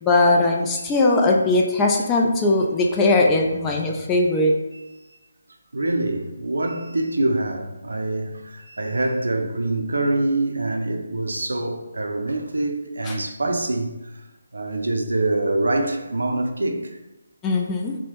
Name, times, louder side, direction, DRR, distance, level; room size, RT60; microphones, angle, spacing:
voice 1, 0.0-4.5 13.1-13.2 17.4-18.0, left 2 dB, 15° left, 0.3 m, -19 dB
voice 2, 5.7-14.2 14.5-17.0, right 2 dB, 80° right, 0.4 m, -25 dB
2.9 x 2.0 x 2.9 m
figure-of-eight pair, 150°, 0 cm